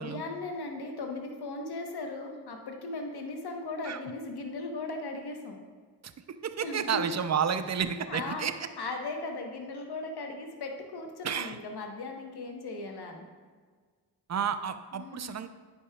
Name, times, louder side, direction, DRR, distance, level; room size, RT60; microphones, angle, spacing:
voice 1, 0.0-5.6 6.6-7.0 8.1-13.2 14.9-15.3, left 3 dB, 65° left, 3 dB, 1.2 m, -37 dB
voice 2, 6.0-8.5 11.2-11.6 14.3-15.5, right 7 dB, 40° right, 11 dB, 0.6 m, -31 dB
9.6 x 5.3 x 2.3 m, 1.5 s
supercardioid pair, 50°, 42 cm